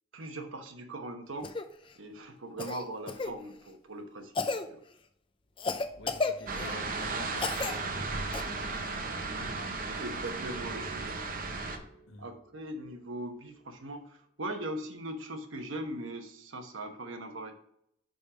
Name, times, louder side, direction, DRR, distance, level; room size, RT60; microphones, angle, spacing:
voice 1, 0.1-1.5 2.0-4.8 9.4-11.2 12.2-17.5, right 1 dB, 85° right, 5 dB, 1.1 m, -40 dB
Cough, 1.4-1.7 2.6-3.3 4.3-4.7 5.6-6.8 7.4-7.8 8.3-8.4 10.3-10.4, left 3 dB, 25° left, 0.4 m, -33 dB
sound 1, 5.6-13.9, right 2 dB, 20° right, 1.6 m, -54 dB
voice 2, 6.0-9.0 9.3-9.5 11.7-12.3, left 3 dB, 80° left, 6 dB, 1.0 m, -49 dB
sound 2, 6.5-11.8, right 3 dB, 45° right, 0.7 m, -35 dB
5.3 x 5.3 x 5.0 m, 0.71 s
head